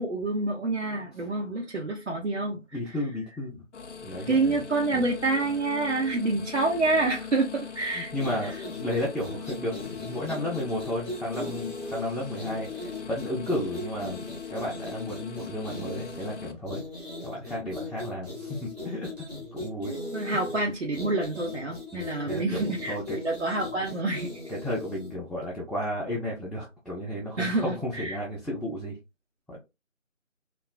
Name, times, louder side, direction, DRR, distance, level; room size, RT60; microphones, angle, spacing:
voice 1, 0.0-3.0 4.3-8.1 8.4-8.6 20.1-24.4 27.4-28.2, right 2 dB, 65° right, 0.7 m, -28 dB
voice 2, 2.7-3.6 4.0-4.6 4.9-5.1 7.9-16.8 17.2-19.1 19.5-19.9 21.9-23.2 24.5-29.0 29.5-29.6, left 1 dB, ahead, 0.4 m, -33 dB
sound 1, 3.7-16.5, left 6 dB, 65° left, 0.5 m, -41 dB
sound 2, 8.1-25.2, left 2 dB, 30° right, 0.9 m, -39 dB
3.0 x 2.3 x 2.2 m
figure-of-eight pair, 175°, 39 cm